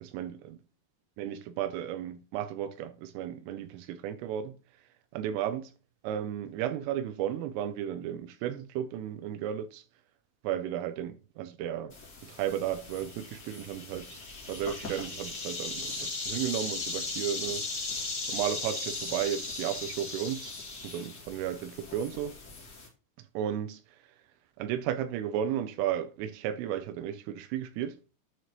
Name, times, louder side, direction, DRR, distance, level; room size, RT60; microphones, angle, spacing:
voice 1, 0.0-0.6 1.2-4.6 5.1-5.7 6.0-9.8 10.4-12.0 12.2-14.2 14.5-17.6 18.3-20.5 20.8-22.3 23.3-24.0 24.6-28.0, right 10 dB, 85° right, 3.1 m, -34 dB
sound 1, 11.9-22.9, left 3 dB, 45° left, 1.2 m, -38 dB
11.0 x 4.4 x 3.0 m
omnidirectional pair, 6.0 m